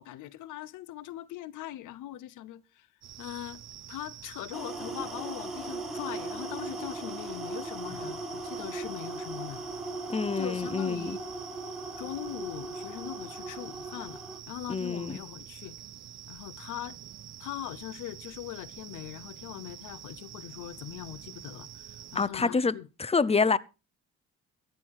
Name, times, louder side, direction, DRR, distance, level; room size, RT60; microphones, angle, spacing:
voice 1, 0.0-2.9 3.2-3.6 3.9-9.6 10.4-11.2 12.0-14.2 14.5-15.8 16.3-17.0 17.4-22.9, left 13 dB, 90° left, 0.9 m, -41 dB
sound 1, 3.0-22.3, right 10 dB, 60° right, 1.0 m, -47 dB
sound 2, 4.5-14.4, right 2 dB, ahead, 4.6 m, -38 dB
voice 2, 10.1-11.2 14.7-15.2 22.1-23.6, left 4 dB, 20° left, 0.8 m, -27 dB
15.0 x 9.5 x 4.7 m
cardioid pair, 90°, 30 cm